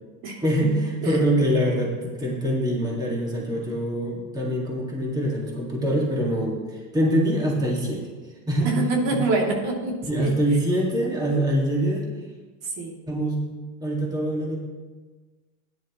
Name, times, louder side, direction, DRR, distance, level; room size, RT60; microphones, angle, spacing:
voice 1, 0.4-8.1 8.5-8.8 9.1-9.2 10.1-12.1 13.1-13.4 13.8-14.6, right 1 dB, 10° right, -2 dB, 2.0 m, -24 dB
voice 2, 8.6-10.3 12.8-12.9, right 2 dB, 75° right, -1 dB, 2.9 m, -25 dB
16.0 x 10.0 x 3.1 m, 1.3 s
cardioid pair, 155°, 35 cm